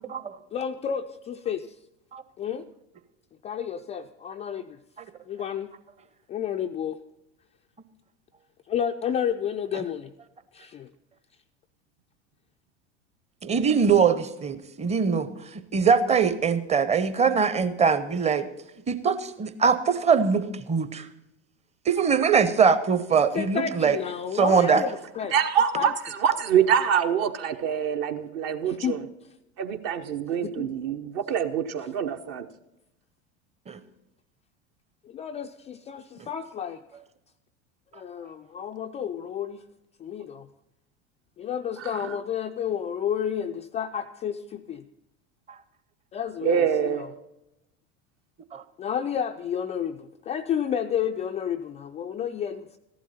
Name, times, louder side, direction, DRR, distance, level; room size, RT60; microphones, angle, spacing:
voice 1, 0.5-1.8 2.4-2.7 3.4-4.8 5.3-5.7 6.3-7.0 8.7-10.1 10.5-10.9 23.3-25.4 25.7-25.9 28.6-29.0 30.4-30.7 35.0-36.8 37.9-39.6 40.0-40.5 41.4-44.9 46.1-47.1 48.8-52.8, left 8 dB, 20° left, 5 dB, 0.3 m, -31 dB
voice 2, 13.4-18.4 18.9-21.1 21.9-24.0 24.3-24.8 33.7-33.8 48.5-48.6, right 6 dB, 20° right, 13 dB, 0.8 m, -22 dB
voice 3, 25.3-29.1 29.6-32.5 41.8-42.0 46.4-47.1, right 8 dB, 45° right, 8 dB, 0.9 m, -25 dB
14.5 x 11.5 x 4.2 m, 0.89 s
figure-of-eight pair, 75°, 35 cm